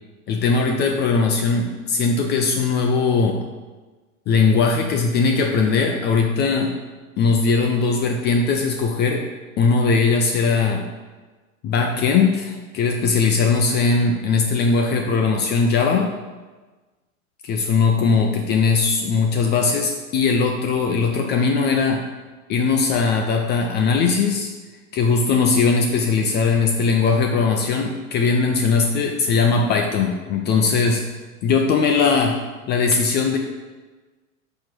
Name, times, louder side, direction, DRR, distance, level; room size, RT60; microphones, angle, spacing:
voice 1, 0.3-3.4 4.3-6.7 7.2-9.2 9.6-10.9 11.6-16.1 17.4-22.0 22.5-24.5 24.9-31.0 31.4-32.4 32.7-33.4, left 4 dB, 25° left, 2 dB, 0.5 m, -19 dB
6.0 x 5.4 x 4.5 m, 1.3 s
hypercardioid pair, 105°, 42 cm